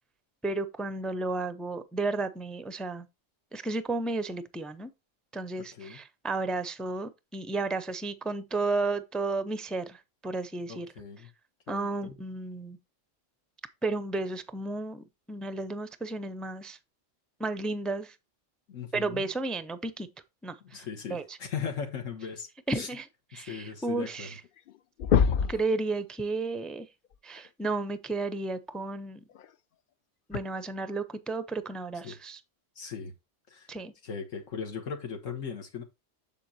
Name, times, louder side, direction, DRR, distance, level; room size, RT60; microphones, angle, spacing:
voice 1, 0.4-3.1 3.5-4.9 5.3-10.9 11.7-12.8 13.8-16.8 17.4-18.1 18.9-20.1 20.4-20.8 21.1-21.4 22.7-23.1 23.3-24.4 25.5-26.9 27.2-29.2 30.3-32.4 33.7-33.9, right 3 dB, ahead, 0.3 m, -33 dB
voice 2, 10.7-11.3 11.7-12.2 18.7-19.3 20.6-22.9 23.3-24.3 25.4-25.5 32.0-32.2 32.7-33.1 33.5-33.7 34.0-35.8, left 6 dB, 80° left, 1.7 m, -38 dB
sound 1, 24.1-24.2 24.5-24.7 25.0-25.7 27.4-27.5 29.3-29.4 30.3-30.4, left 7 dB, 60° left, 0.6 m, -24 dB
7.5 x 7.2 x 2.8 m
omnidirectional pair, 1.3 m